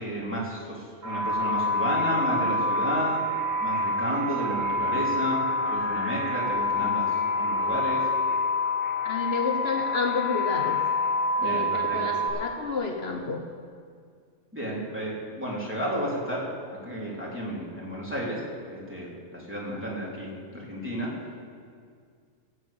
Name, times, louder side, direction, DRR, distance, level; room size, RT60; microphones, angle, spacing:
voice 1, 0.0-3.2 3.6-8.1 11.4-12.2 14.5-16.5 16.8-18.4 18.7-21.1, equal, 10° right, -6 dB, 3.4 m, -32 dB
sound 1, 1.0-12.3, left 2 dB, 75° right, 4.6 m, -27 dB
voice 2, 9.0-10.8 11.4-13.4, left 4 dB, 55° left, 2 dB, 1.2 m, -30 dB
15.5 x 8.3 x 8.6 m, 2.1 s
omnidirectional pair, 1.3 m